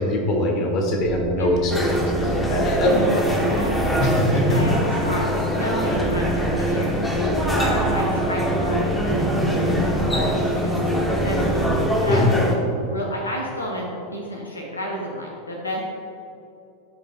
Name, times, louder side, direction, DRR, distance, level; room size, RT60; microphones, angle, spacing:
voice 1, 0.0-1.9 2.2-3.0 4.0-4.4 12.1-12.4, left 2 dB, 40° left, 1 dB, 1.4 m, -22 dB
sound 1, 1.0-11.9, right 2 dB, 65° right, 1.1 m, -27 dB
sound 2, 1.7-12.6, equal, 10° left, 1.2 m, -24 dB
voice 2, 2.5-3.9 4.3-5.3 5.6-9.2 9.6-15.8, equal, 80° left, -1 dB, 0.8 m, -31 dB
12.5 x 5.3 x 2.3 m, 2.8 s
figure-of-eight pair, 85°, 0 cm